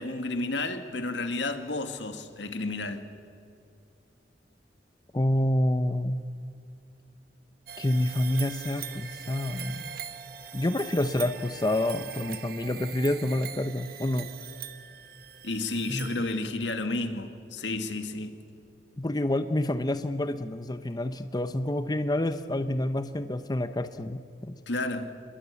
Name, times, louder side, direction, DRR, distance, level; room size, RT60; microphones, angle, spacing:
voice 1, 0.0-3.1 15.4-18.4 24.7-25.1, left 2 dB, 80° left, 2.2 m, -31 dB
voice 2, 5.1-6.2 7.8-10.0 10.5-14.3 15.9-16.1 19.0-24.6, left 1 dB, 20° left, 0.8 m, -28 dB
sound 1, 7.7-16.7, right 9 dB, 55° right, 1.4 m, -42 dB
27.0 x 21.5 x 8.3 m
head